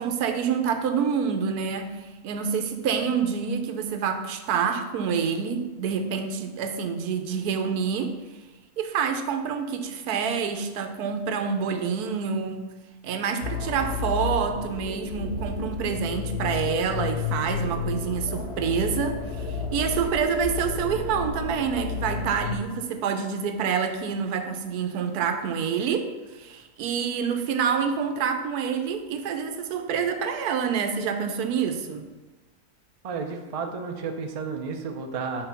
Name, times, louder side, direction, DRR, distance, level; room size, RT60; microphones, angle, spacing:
voice 1, 0.0-8.2 8.8-12.8 13.0-32.1, right 6 dB, 90° right, 7 dB, 1.2 m, -27 dB
sound 1, 13.4-22.6, left 5 dB, 85° left, 1.4 m, -31 dB
voice 2, 33.0-35.5, right 5 dB, 60° right, 4 dB, 0.3 m, -32 dB
6.0 x 3.6 x 5.6 m, 1.2 s
omnidirectional pair, 1.6 m